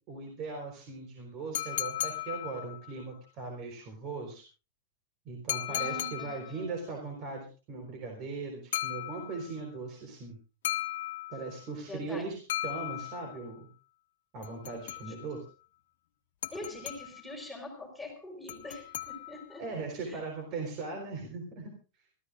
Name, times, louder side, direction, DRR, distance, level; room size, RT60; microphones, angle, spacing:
voice 1, 0.1-4.4 5.2-10.4 11.3-13.7 14.3-15.4 19.6-21.7, right 3 dB, 35° right, 3 dB, 4.2 m, -39 dB
sound 1, 1.5-3.0 5.5-6.6 8.7-9.6 10.6-11.7 12.5-13.5 14.4-15.4 16.4-17.3 18.5-19.6, left 14 dB, 70° left, 1.6 m, -36 dB
voice 2, 5.7-7.0 11.9-12.2 16.5-19.7 20.0-20.2, left 1 dB, ahead, 0 dB, 4.5 m, -44 dB
26.0 x 14.5 x 2.5 m, 0.33 s
supercardioid pair, 155°, 0 cm